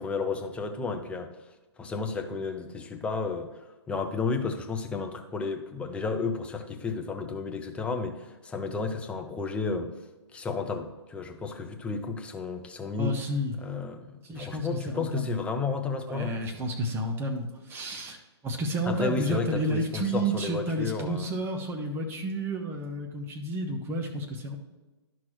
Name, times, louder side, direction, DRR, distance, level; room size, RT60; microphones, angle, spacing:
voice 1, 0.0-1.3 1.8-9.9 10.3-13.2 13.6-16.4 18.9-21.3, left 4 dB, 10° left, 5 dB, 0.6 m, -32 dB
voice 2, 13.0-13.6 14.2-15.5 16.1-18.2 18.4-24.6, right 1 dB, 15° right, 3 dB, 1.0 m, -31 dB
11.5 x 6.0 x 3.1 m, 1.2 s
hypercardioid pair, 140°, 15 cm